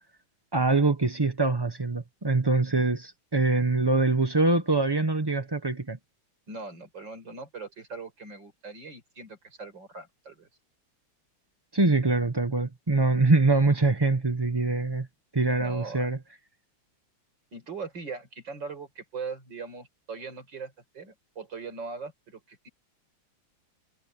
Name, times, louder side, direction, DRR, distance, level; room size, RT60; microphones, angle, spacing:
voice 1, 0.5-6.0 11.7-15.1 15.3-16.2, right 3 dB, 25° right, 0.5 m, -24 dB
voice 2, 6.5-10.5 15.6-16.1 17.5-22.7, right 4 dB, 55° right, 5.7 m, -40 dB
omnidirectional pair, 2.3 m